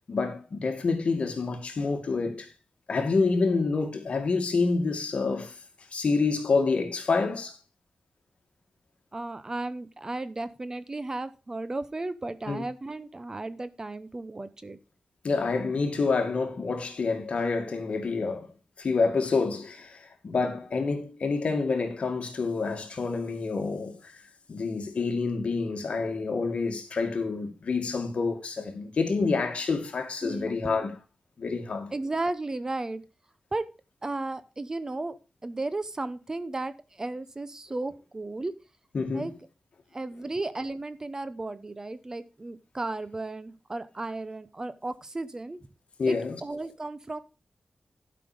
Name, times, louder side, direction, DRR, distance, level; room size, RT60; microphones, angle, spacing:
voice 1, 0.1-2.5 2.9-5.5 5.9-7.6 12.5-12.6 15.2-18.5 18.8-24.1 24.5-31.0 31.4-31.9 38.9-39.3 46.0-46.4, left 4 dB, 60° left, 2.1 m, -28 dB
voice 2, 9.1-14.8 30.2-30.9 31.9-33.0 33.5-33.6 34.0-35.2 35.4-38.5 39.1-39.3 39.9-45.6 46.1-47.2, right 2 dB, 25° right, 0.7 m, -34 dB
11.5 x 5.8 x 5.1 m
wide cardioid pair, 115°, 2 cm